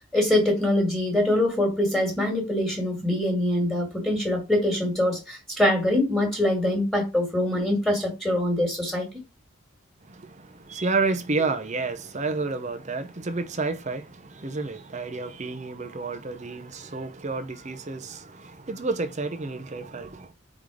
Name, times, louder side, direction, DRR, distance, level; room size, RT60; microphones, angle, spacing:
voice 1, 0.1-9.1, left 1 dB, ahead, 1.9 m, -24 dB
voice 2, 10.0-20.3, right 3 dB, 30° right, 0.7 m, -30 dB
5.0 x 3.9 x 4.8 m
head